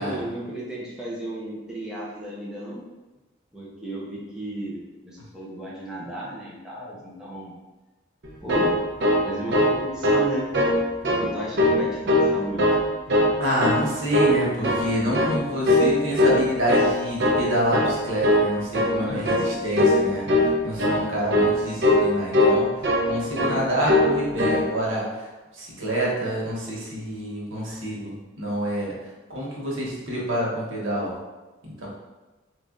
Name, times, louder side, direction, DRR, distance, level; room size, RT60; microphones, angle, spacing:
voice 1, 0.0-2.8 3.5-7.5 8.4-8.7 9.2-10.5 11.2-12.6 19.1-19.5, right 1 dB, 5° right, -6 dB, 0.6 m, -34 dB
sound 1, 8.2-9.8 10.0-10.3 10.5-11.2 11.6-12.3 12.6-13.3 13.6-13.8 14.1-14.9 15.1-15.4 15.7-16.9 17.2-17.4 17.7-18.0 18.2-18.5 18.7-19.0 19.3-19.5 19.8-20.0 20.3-20.5 20.8-21.0 21.3-21.5 21.8-22.1 22.3-23.1 23.4-23.6 23.9-24.1 24.4-24.6, left 1 dB, 60° right, 0.6 m, -20 dB
voice 2, 13.4-28.9 29.3-31.2 31.6-31.9, equal, 90° right, -4 dB, 1.1 m, -27 dB
3.2 x 2.5 x 3.7 m, 1.2 s
head